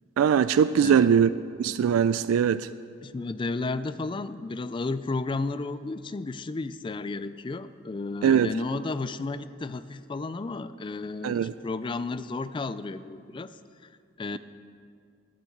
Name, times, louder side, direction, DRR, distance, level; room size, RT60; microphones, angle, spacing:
voice 1, 0.2-1.3 1.6-2.7 8.2-8.5 11.2-11.5, right 8 dB, 90° right, 0.3 m, -21 dB
voice 2, 0.8-1.1 3.0-13.6 14.2-14.4, left 3 dB, 25° left, 0.3 m, -33 dB
9.5 x 9.1 x 8.4 m
head